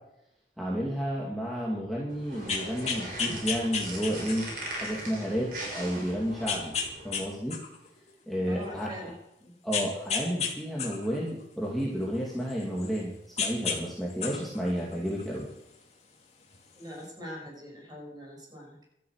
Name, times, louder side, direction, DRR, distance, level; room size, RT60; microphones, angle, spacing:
voice 1, 0.6-4.5 4.7-6.7 7.0-7.6 8.3-9.1 9.6-15.5, equal, ahead, -5 dB, 2.5 m, -31 dB
sound 1, 2.1-7.1, right 1 dB, 50° right, 6.1 m, -40 dB
sound 2, 2.3-4.6 5.2-5.3 6.5-7.2 7.5-8.8 9.7-10.5 10.8-13.0 13.4-13.8 14.1-15.5 16.5-16.6, left 5 dB, 35° left, 2.5 m, -32 dB
voice 2, 8.5-9.6 16.8-18.8, equal, 20° right, -1 dB, 6.3 m, -43 dB
13.0 x 9.7 x 8.2 m, 0.82 s
head